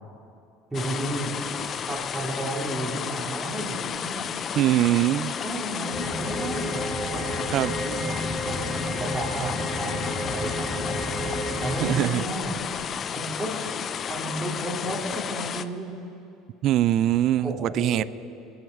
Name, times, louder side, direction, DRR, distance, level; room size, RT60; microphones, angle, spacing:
sound 1, 0.7-15.6, left 7 dB, 40° left, 0.5 m, -32 dB
voice 1, 0.7-1.3 1.9-4.2 5.4-7.3 7.8-11.2 11.6-12.6 13.1-13.6 14.1-15.9 17.4-18.1, right 1 dB, 15° right, -4 dB, 4.0 m, -33 dB
voice 2, 4.6-5.3 7.5-7.8 11.8-12.2 16.6-18.0, right 13 dB, 55° right, 19 dB, 0.3 m, -22 dB
sound 2, 5.9-12.0, equal, 20° left, 3.3 m, -31 dB
22.0 x 8.0 x 7.1 m, 2.6 s
supercardioid pair, 110°, 0 cm